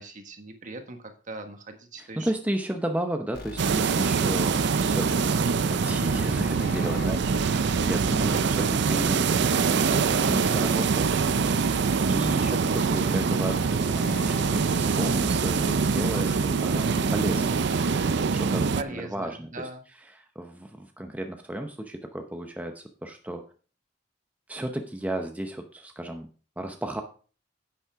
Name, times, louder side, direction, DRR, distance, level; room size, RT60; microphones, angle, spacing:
voice 1, 0.0-2.3 8.2-8.7 12.8-13.2 18.7-19.8, right 2 dB, 45° right, 6 dB, 1.5 m, -39 dB
voice 2, 2.0-11.2 12.1-17.6 18.3-19.7 20.1-23.4 24.5-26.3 26.6-27.0, right 1 dB, 10° right, 4 dB, 0.8 m, -34 dB
sound 1, 3.3-18.2, left 2 dB, 55° left, 1.2 m, -40 dB
sound 2, 3.6-18.8, right 5 dB, 65° right, 0.5 m, -24 dB
10.5 x 8.5 x 3.6 m, 0.39 s
head